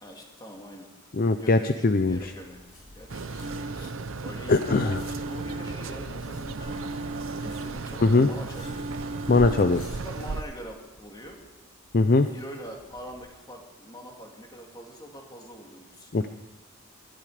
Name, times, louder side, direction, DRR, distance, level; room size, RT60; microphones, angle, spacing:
voice 1, 0.0-0.9 1.4-2.6 2.9-3.2 4.2-7.0 7.4-8.9 9.7-11.4 12.3-16.1, equal, 20° left, 1 dB, 2.5 m, -43 dB
voice 2, 1.1-2.2 3.8-3.9 4.5-5.0 8.0-8.3 9.3-9.8 11.9-12.3 16.1-16.3, left 3 dB, 45° left, 9 dB, 0.6 m, -21 dB
sound 1, 1.9-13.3, left 1 dB, 90° left, 7.3 m, -51 dB
sound 2, 3.1-10.4, right 4 dB, 70° right, 0.7 m, -36 dB
sound 3, 3.4-4.2 4.6-6.2 6.6-8.1 8.6-10.0, right 2 dB, 30° right, 0.8 m, -38 dB
19.5 x 14.0 x 5.0 m, 1.0 s
head